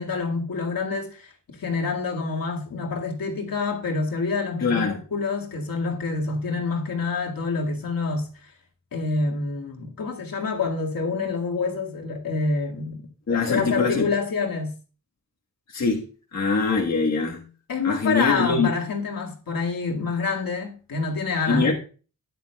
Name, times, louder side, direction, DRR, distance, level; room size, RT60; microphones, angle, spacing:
voice 1, 0.0-8.5 8.9-14.7 17.7-21.7, left 4 dB, 75° left, 2.1 m, -27 dB
voice 2, 4.6-5.0 13.3-14.1 15.7-16.1 16.3-17.5 17.8-18.7 21.5-21.7, left 4 dB, 50° left, 1.5 m, -23 dB
13.5 x 10.0 x 2.3 m
wide cardioid pair, 175°, 35 cm